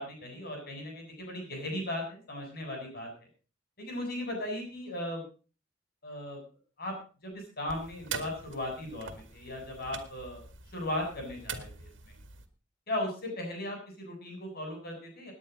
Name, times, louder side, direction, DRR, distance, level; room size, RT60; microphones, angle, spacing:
voice 1, 0.0-3.1 3.8-5.2 6.0-6.4 6.8-6.9 7.2-10.4 10.7-12.1 12.9-15.3, left 1 dB, 55° left, 2 dB, 7.9 m, -37 dB
sound 1, 7.7-12.5, right 6 dB, 75° right, 2.0 m, -44 dB
18.5 x 9.8 x 5.3 m, 0.37 s
head